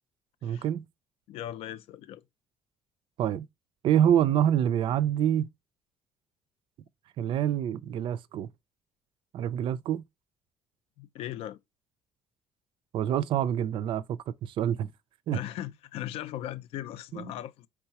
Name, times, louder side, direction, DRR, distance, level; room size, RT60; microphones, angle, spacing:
voice 1, 0.4-0.9 3.2-3.5 3.8-5.5 7.2-8.5 9.3-10.0 12.9-14.9 15.3-15.4 17.1-17.3, right 10 dB, 55° right, 0.4 m, -26 dB
voice 2, 1.3-2.2 11.0-11.6 15.3-17.7, left 12 dB, 80° left, 0.6 m, -38 dB
4.7 x 3.6 x 2.8 m
cardioid pair, 130°, 10 cm